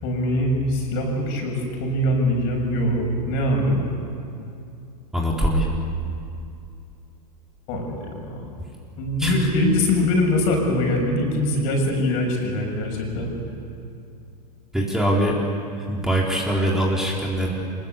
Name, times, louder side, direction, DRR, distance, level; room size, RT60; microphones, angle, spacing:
voice 1, 0.0-3.8 7.7-8.4 9.0-13.3, left 1 dB, 55° left, 1 dB, 6.8 m, -22 dB
voice 2, 5.1-5.7 9.2-9.5 14.7-15.4 15.8-17.5, right 1 dB, ahead, -3 dB, 3.8 m, -22 dB
24.0 x 21.0 x 8.3 m, 2.5 s
hypercardioid pair, 105°, 21 cm